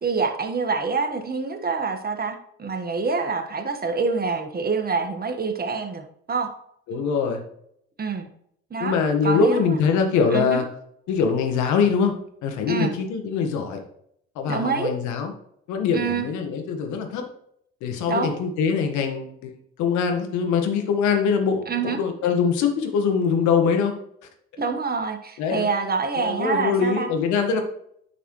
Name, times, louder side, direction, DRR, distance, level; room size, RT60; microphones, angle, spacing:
voice 1, 0.0-6.5 8.0-8.3 8.7-9.0 9.2-9.8 10.3-10.6 12.7-12.9 14.5-14.9 15.9-16.3 18.1-18.4 21.7-22.0 24.6-27.1, right 4 dB, 30° right, 5 dB, 1.5 m, -26 dB
voice 2, 6.9-7.4 8.8-10.7 11.1-13.8 14.3-15.3 15.7-17.2 17.8-19.5 19.8-23.9 25.4-25.7 26.2-27.6, left 5 dB, 70° left, 5 dB, 1.6 m, -23 dB
9.9 x 5.9 x 3.2 m, 0.71 s
hypercardioid pair, 65°, 30 cm